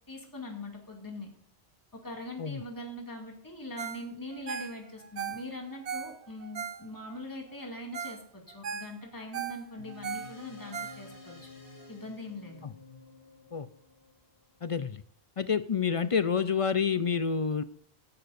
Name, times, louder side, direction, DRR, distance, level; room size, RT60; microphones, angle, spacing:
voice 1, 0.1-1.3 1.9-11.5 11.9-12.6, left 1 dB, 20° left, 0 dB, 2.4 m, -42 dB
Ringtone, 3.8-4.1 4.3-7.2 7.6-7.7 7.9-8.2 8.5-11.4 11.8-11.9, right 7 dB, 90° right, 1.3 m, -38 dB
sound 1, 9.8-14.6, left 4 dB, 80° left, 3.3 m, -51 dB
voice 2, 14.6-15.0 15.4-17.6, left 6 dB, 45° left, 13 dB, 0.4 m, -28 dB
17.0 x 11.0 x 2.6 m, 0.63 s
omnidirectional pair, 1.1 m